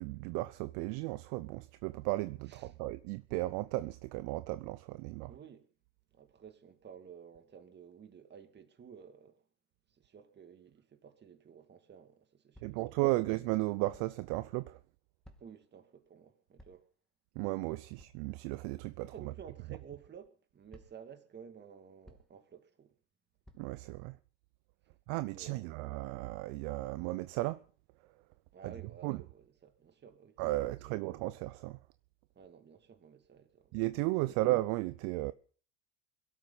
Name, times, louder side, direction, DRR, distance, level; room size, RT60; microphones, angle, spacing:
voice 1, 0.0-5.3 12.6-14.8 17.4-19.1 23.6-24.2 25.1-27.6 28.6-28.7 29.0-29.2 30.4-31.8 33.7-35.3, right 19 dB, 55° right, 0.7 m, -34 dB
voice 2, 5.3-5.7 6.1-9.4 9.9-13.2 15.4-16.9 19.1-22.9 24.8-24.9 25.3-25.7 28.5-31.1 32.3-33.7 34.3-34.4, right 7 dB, 30° right, 2.4 m, -54 dB
sound 1, 12.5-12.9 13.9-14.3 15.2-15.7 16.6-16.9 18.0-18.3 19.4-19.6 20.7-21.2 22.0-22.5 23.4-23.9, equal, ahead, 2.6 m, -59 dB
22.5 x 12.5 x 4.1 m
hypercardioid pair, 90°, 37 cm